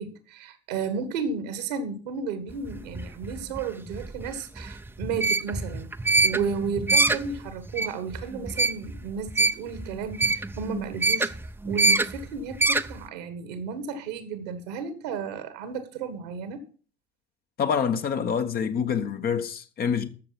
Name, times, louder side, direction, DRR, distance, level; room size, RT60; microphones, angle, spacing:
voice 1, 0.0-5.9 6.2-11.3 11.6-16.6, right 5 dB, 70° right, 1.7 m, -33 dB
sound 1, 2.5-13.0, right 3 dB, 10° right, 0.7 m, -26 dB
voice 2, 17.6-20.1, left 7 dB, 45° left, 1.3 m, -26 dB
13.5 x 6.8 x 5.9 m
figure-of-eight pair, 50°, 21 cm